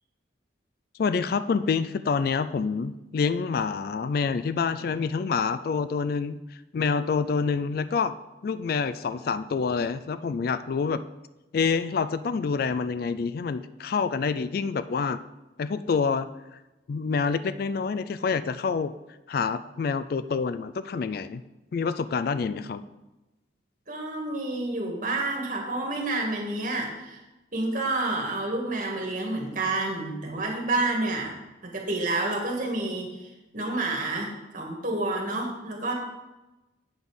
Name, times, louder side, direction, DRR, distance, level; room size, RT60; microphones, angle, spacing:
voice 1, 1.0-6.4 6.7-8.1 8.4-11.0 11.5-15.2 15.6-16.6 16.9-18.9 19.3-21.4 21.7-22.8, left 5 dB, 50° left, 13 dB, 0.3 m, -27 dB
voice 2, 23.9-27.2 27.5-31.3 31.6-35.9, right 2 dB, 45° right, 0 dB, 1.9 m, -29 dB
8.1 x 5.4 x 6.4 m, 1.0 s
head